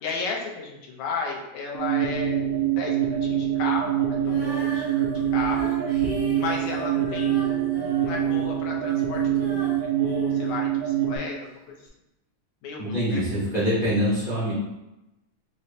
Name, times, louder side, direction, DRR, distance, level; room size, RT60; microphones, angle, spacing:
voice 1, 0.0-2.4 2.7-4.9 5.3-5.8 6.3-11.9 12.6-13.2, left 4 dB, 80° left, -1 dB, 2.1 m, -34 dB
sound 1, 1.7-11.2, right 10 dB, 80° right, 1.6 m, -25 dB
Female singing, 4.2-11.3 11.9-12.0, equal, 65° right, 0.5 m, -38 dB
voice 2, 12.8-14.5, equal, 50° left, -10 dB, 0.6 m, -24 dB
5.8 x 2.2 x 2.7 m, 0.95 s
omnidirectional pair, 3.3 m